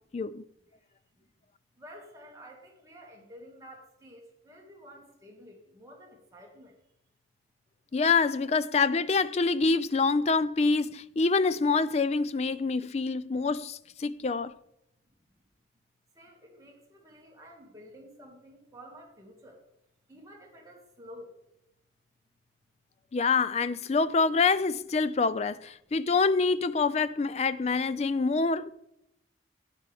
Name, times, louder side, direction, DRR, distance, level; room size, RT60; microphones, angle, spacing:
voice 1, 0.1-0.4 7.9-14.5 23.1-28.7, left 4 dB, 35° left, 0.4 m, -26 dB
voice 2, 1.8-6.8 16.1-19.6 20.1-21.3, equal, 20° right, 2.0 m, -51 dB
12.5 x 9.7 x 3.5 m
head